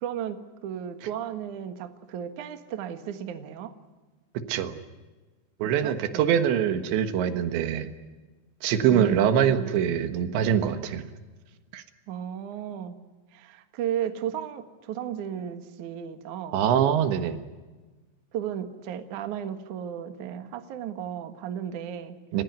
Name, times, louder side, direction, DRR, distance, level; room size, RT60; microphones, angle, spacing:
voice 1, 0.0-3.7 5.8-6.4 8.9-9.7 12.1-13.0 13.3-16.7 18.3-22.2, right 9 dB, 60° right, 8 dB, 2.3 m, -34 dB
voice 2, 5.6-7.9 8.6-11.0 11.7-11.8 16.5-17.4 22.3-22.4, right 9 dB, 80° right, 9 dB, 3.6 m, -24 dB
30.0 x 15.5 x 9.5 m, 1.3 s
omnidirectional pair, 5.2 m